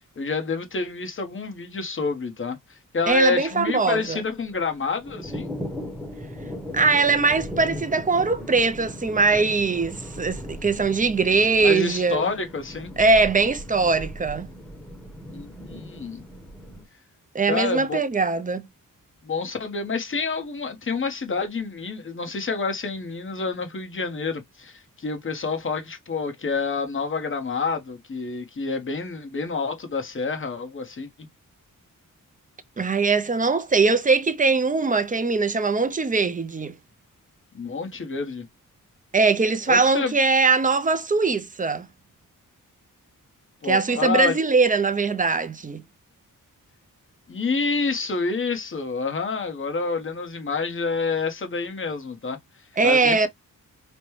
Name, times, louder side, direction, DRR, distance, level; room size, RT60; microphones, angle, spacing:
voice 1, 0.2-5.5 11.6-12.9 15.3-16.2 17.5-18.0 19.2-31.1 37.5-38.5 39.7-40.1 43.6-44.4 47.3-52.4 52.8-53.3, left 4 dB, 35° left, 1.0 m, -28 dB
sound 1, 3.0-16.8, equal, 5° left, 1.0 m, -38 dB
voice 2, 3.1-4.2 6.7-12.3 13.0-14.5 17.3-18.7 32.8-36.7 39.1-41.9 43.6-45.8 52.8-53.3, right 4 dB, 25° right, 0.4 m, -21 dB
5.2 x 2.1 x 3.1 m
wide cardioid pair, 145°, 34 cm